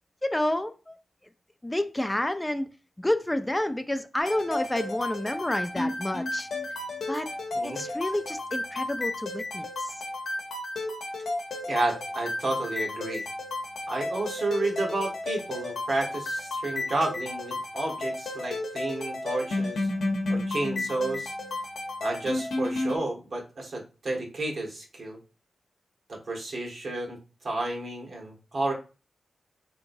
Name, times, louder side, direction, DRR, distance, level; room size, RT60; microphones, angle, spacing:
voice 1, 0.2-1.0 1.6-2.7 3.0-6.5 7.1-7.3 7.6-10.0, left 1 dB, 15° left, 9 dB, 0.3 m, -29 dB
sound 1, 4.2-23.0, left 2 dB, 80° left, 0.8 m, -32 dB
voice 2, 11.7-13.2 13.9-19.9 20.3-21.3 22.0-25.2 26.1-27.2 27.4-28.7, right 2 dB, 65° right, 0 dB, 1.2 m, -31 dB
3.7 x 2.9 x 2.6 m, 0.33 s
cardioid pair, 55°, 0 cm